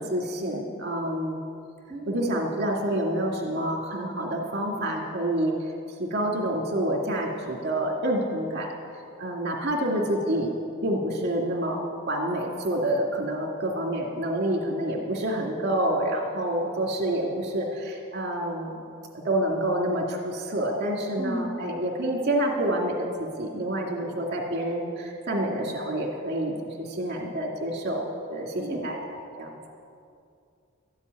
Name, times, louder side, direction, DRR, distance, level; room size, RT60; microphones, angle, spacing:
voice 1, 0.0-1.4 2.1-5.5 6.0-8.7 9.2-10.5 10.8-18.8 19.2-28.0 28.3-29.7, right 1 dB, 50° right, -1 dB, 2.3 m, -28 dB
voice 2, 1.9-2.3 21.2-21.6 28.6-28.8, right 1 dB, 5° left, -3 dB, 1.6 m, -34 dB
13.5 x 8.1 x 9.6 m, 2.4 s
head